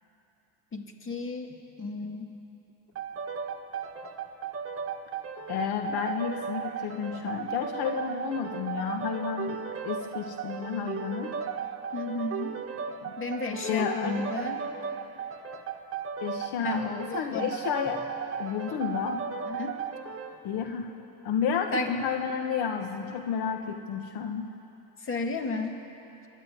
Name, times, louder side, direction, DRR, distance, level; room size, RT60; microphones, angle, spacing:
voice 1, 0.7-2.3 11.9-12.5 13.2-14.7 16.6-17.5 19.5-19.8 21.7-21.9 25.0-25.8, left 3 dB, 30° left, 4 dB, 2.3 m, -33 dB
sound 1, 3.0-20.4, right 7 dB, 35° right, 1.7 m, -36 dB
voice 2, 5.5-11.3 13.0-13.1 13.6-14.2 16.2-18.0 18.4-19.2 20.4-20.9 21.2-24.5, left 7 dB, 65° left, 5 dB, 1.5 m, -31 dB
25.0 x 12.0 x 9.5 m, 2.9 s
supercardioid pair, 105°, 40 cm